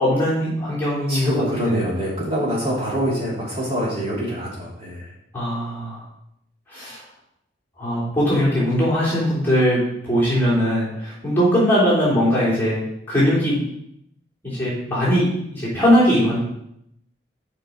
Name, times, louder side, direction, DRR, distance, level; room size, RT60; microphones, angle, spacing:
voice 1, 0.0-1.8 5.3-6.0 6.7-7.0 7.8-9.8 10.0-12.8 13.1-13.6 14.4-15.2 15.5-16.4, equal, 10° left, -10 dB, 3.1 m, -20 dB
voice 2, 1.1-5.1, equal, 30° right, -6 dB, 2.6 m, -25 dB
7.0 x 5.2 x 4.5 m, 0.76 s
head